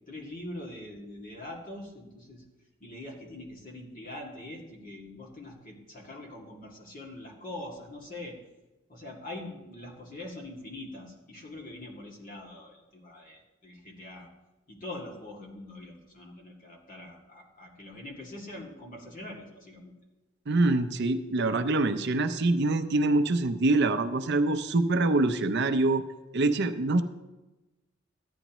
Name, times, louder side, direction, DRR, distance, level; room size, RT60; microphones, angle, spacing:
voice 1, 0.1-2.4 2.8-8.4 8.9-14.3 14.7-19.9, left 1 dB, 45° left, -1 dB, 2.3 m, -43 dB
voice 2, 20.5-26.0 26.3-27.0, right 2 dB, 60° right, 9 dB, 0.6 m, -25 dB
14.0 x 10.0 x 3.0 m, 1.1 s
head